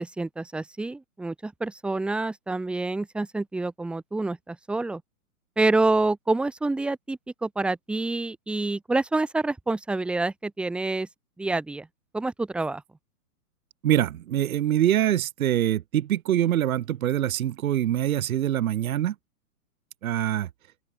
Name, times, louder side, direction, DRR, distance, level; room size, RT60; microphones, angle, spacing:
voice 1, 0.0-5.0 5.6-11.1 11.4-11.9 12.1-12.8, right 2 dB, ahead, 0.7 m, -27 dB
voice 2, 13.8-19.1 20.0-20.5, right 12 dB, 70° right, 1.0 m, -24 dB
open air
hypercardioid pair, 130°, 44 cm